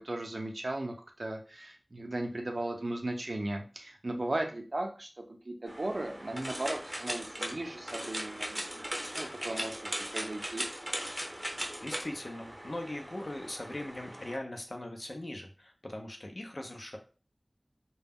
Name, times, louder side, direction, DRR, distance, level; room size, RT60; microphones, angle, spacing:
voice 1, 0.0-5.1 5.4-10.7, right 1 dB, 65° right, 3 dB, 0.5 m, -37 dB
sound 1, 5.7-14.4, equal, 20° right, 0.6 m, -39 dB
voice 2, 11.8-17.0, left 1 dB, 60° left, 3 dB, 0.5 m, -40 dB
2.2 x 2.0 x 3.5 m, 0.35 s
wide cardioid pair, 40°, 0 cm